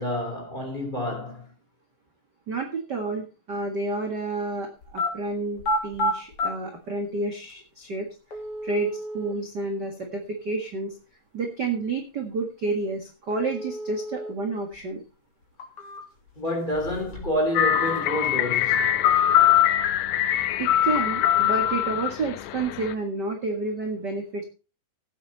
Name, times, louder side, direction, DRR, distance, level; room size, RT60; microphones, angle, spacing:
voice 1, 0.0-1.5 16.4-18.9, left 1 dB, 15° left, 3.3 m, -28 dB
voice 2, 2.5-8.1 8.6-10.9 11.3-15.0 20.6-24.4, right 3 dB, 40° right, 1.9 m, -30 dB
sound 1, 4.8-5.1 5.6-6.5 7.5-7.6 8.3-9.3 13.3-14.3 14.7-14.8 15.4-16.3 16.7-17.4 17.7-18.3, left 1 dB, 40° left, 3.9 m, -30 dB
sound 2, 17.6-22.9, left 11 dB, 85° left, 2.6 m, -22 dB
16.5 x 8.7 x 4.2 m
omnidirectional pair, 4.0 m